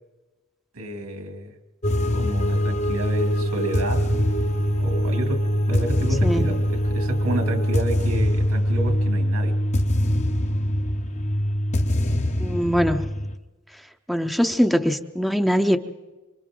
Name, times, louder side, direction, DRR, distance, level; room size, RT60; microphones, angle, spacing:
voice 1, 0.7-1.5 2.1-4.1 4.8-9.5, right 1 dB, 85° right, 4 dB, 2.9 m, -30 dB
sound 1, 1.8-13.4, equal, 30° left, 0.8 m, -23 dB
voice 2, 12.4-13.1 14.1-15.8, equal, ahead, 6 dB, 0.6 m, -22 dB
27.5 x 25.0 x 3.8 m, 1.2 s
head